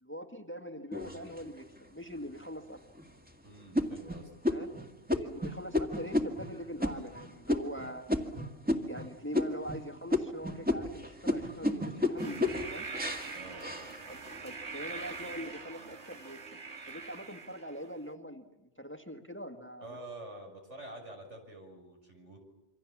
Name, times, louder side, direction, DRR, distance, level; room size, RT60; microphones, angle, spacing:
voice 1, 0.0-2.8 4.5-4.7 5.2-8.0 8.9-12.9 14.1-16.4 16.9-20.0, equal, 10° left, 5 dB, 1.7 m, -43 dB
sound 1, 0.9-1.8 2.4-2.5 3.0-3.3 3.8-9.1 9.3-9.8 10.1-14.4 14.9-15.4, left 2 dB, 10° right, 2.0 m, -33 dB
voice 2, 3.4-4.6 13.3-13.7 19.8-22.4, right 2 dB, 90° right, 3 dB, 6.7 m, -48 dB
sound 2, 12.2-17.9, right 4 dB, 70° right, 2.1 m, -43 dB
27.0 x 26.0 x 7.3 m, 0.98 s
omnidirectional pair, 1.2 m